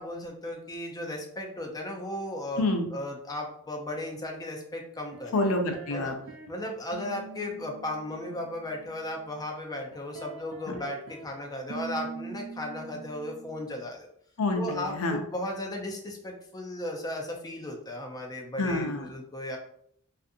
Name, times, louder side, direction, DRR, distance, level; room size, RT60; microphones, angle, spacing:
voice 1, 0.0-5.3 5.9-6.1 6.5-14.1 14.5-19.6, left 1 dB, 15° left, 1 dB, 0.5 m, -36 dB
sound 1, 5.1-6.5 6.9-9.4 9.9-11.3 11.7-13.7, right 4 dB, 65° right, 0.4 m, -44 dB
voice 2, 5.3-6.1 10.7-10.8 14.4-15.2 18.6-19.1, left 2 dB, 70° left, 5 dB, 0.5 m, -27 dB
2.5 x 2.5 x 2.6 m, 0.66 s
head